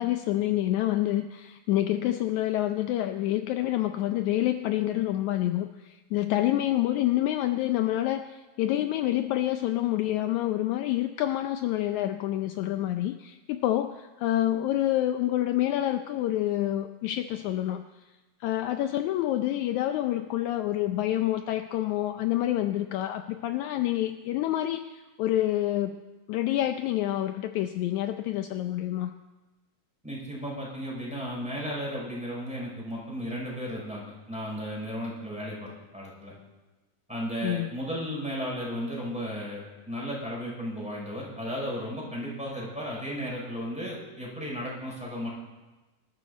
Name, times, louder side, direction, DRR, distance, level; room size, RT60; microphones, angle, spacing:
voice 1, 0.0-17.8 18.4-26.0 26.3-29.1 37.4-37.7, left 13 dB, 80° left, 8 dB, 1.7 m, -27 dB
voice 2, 30.0-36.3 37.1-45.3, equal, ahead, -5 dB, 6.0 m, -34 dB
25.5 x 13.0 x 4.2 m, 1.2 s
omnidirectional pair, 4.0 m